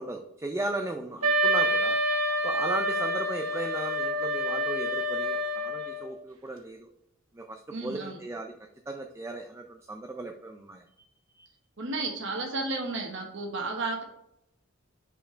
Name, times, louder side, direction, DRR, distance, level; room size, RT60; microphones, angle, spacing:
voice 1, 0.0-2.0 2.4-6.9 7.3-8.5 8.9-10.8 11.4-11.5, right 2 dB, 15° right, 3 dB, 0.4 m, -36 dB
Wind instrument woodwind instrument, 1.2-6.1, equal, 80° right, 1.2 m, -27 dB
voice 2, 7.7-8.2 11.8-14.0, right 3 dB, 60° right, 1 dB, 1.2 m, -32 dB
5.7 x 4.4 x 4.4 m, 0.80 s
head